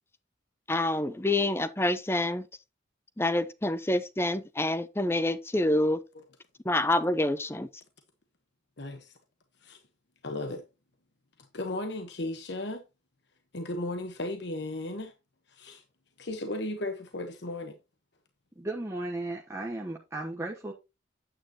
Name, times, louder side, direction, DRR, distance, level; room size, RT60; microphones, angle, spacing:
voice 1, 0.7-2.4 3.2-6.0 6.7-7.7, left 1 dB, 10° left, 0.6 m, -27 dB
voice 2, 8.8-9.2 9.6-9.8 10.2-10.6 11.4-12.8 13.5-15.1 15.5-15.8 16.2-17.8, left 2 dB, 65° left, 1.1 m, -35 dB
voice 3, 18.6-20.7, right 2 dB, 15° right, 1.0 m, -35 dB
9.1 x 9.0 x 2.9 m
head